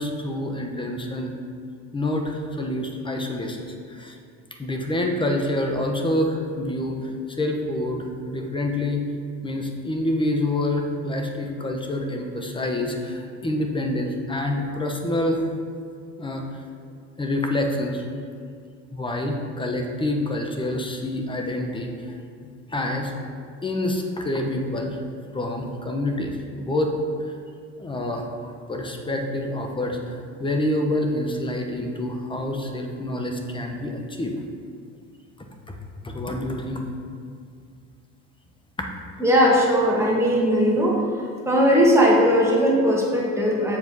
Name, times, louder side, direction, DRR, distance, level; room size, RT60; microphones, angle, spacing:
voice 1, 0.0-1.4 1.9-4.2 4.6-9.0 9.4-15.5 16.2-16.5 17.2-18.0 18.9-22.2 22.7-23.1 23.6-25.0 25.3-26.9 27.8-34.3 35.4-35.8 36.0-36.9, left 1 dB, 15° left, 2 dB, 0.9 m, -27 dB
voice 2, 39.2-41.0 41.5-43.8, equal, 10° right, -4 dB, 1.8 m, -18 dB
7.1 x 5.1 x 4.0 m, 2.3 s
supercardioid pair, 95°, 30 cm